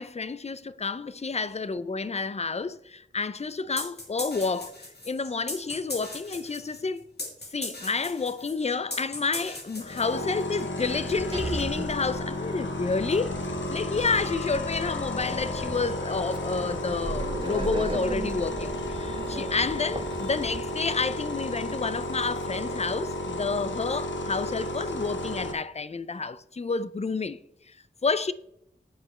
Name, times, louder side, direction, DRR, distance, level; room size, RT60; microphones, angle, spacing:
voice 1, 0.0-4.8 5.1-7.0 7.5-13.4 13.7-27.4 28.0-28.3, left 4 dB, 35° left, 0.4 m, -30 dB
sound 1, 3.8-10.5, left 2 dB, 60° left, 2.1 m, -38 dB
sound 2, 9.8-25.5, left 1 dB, 85° left, 0.9 m, -33 dB
Sliding door, 10.8-21.0, right 2 dB, 25° right, 0.8 m, -37 dB
8.6 x 5.1 x 4.2 m
wide cardioid pair, 50°, 19 cm